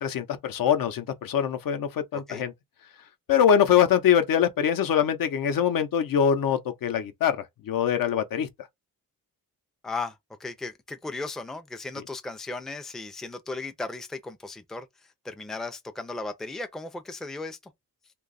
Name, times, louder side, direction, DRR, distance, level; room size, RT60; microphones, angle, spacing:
voice 1, 0.0-2.5 3.3-8.5, left 8 dB, 70° left, 0.7 m, -23 dB
voice 2, 2.1-2.4 9.8-14.9 15.2-17.6, left 3 dB, ahead, 0.4 m, -36 dB
2.8 x 2.3 x 4.0 m
cardioid pair, 120°, 36 cm